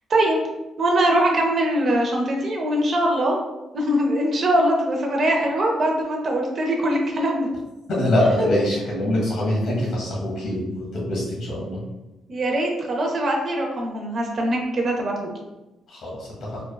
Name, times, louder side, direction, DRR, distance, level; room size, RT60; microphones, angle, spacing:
voice 1, 0.1-0.4 0.8-3.4 3.7-7.5 8.4-8.5 12.3-15.3, right 1 dB, 50° right, 0 dB, 0.6 m, -22 dB
voice 2, 8.0-11.8 15.9-16.6, left 1 dB, 70° left, -3 dB, 1.5 m, -24 dB
3.5 x 2.3 x 2.3 m, 1.0 s
cardioid pair, 90°, 0 cm